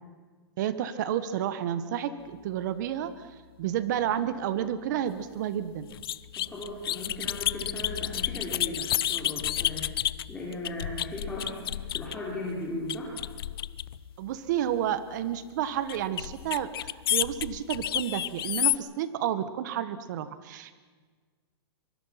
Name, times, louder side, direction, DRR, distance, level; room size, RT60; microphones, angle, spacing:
voice 1, 0.6-3.3 3.6-5.9 14.2-16.7 17.1-20.7, right 10 dB, 45° right, 12 dB, 1.5 m, -30 dB
sound 1, 5.9-12.3 12.9-14.1 15.9-18.8, left 12 dB, 60° left, 0.6 m, -30 dB
voice 2, 6.4-9.9 10.3-13.1, left 1 dB, 10° left, -5 dB, 3.7 m, -37 dB
23.5 x 23.5 x 5.9 m, 1.5 s
hypercardioid pair, 160°, 14 cm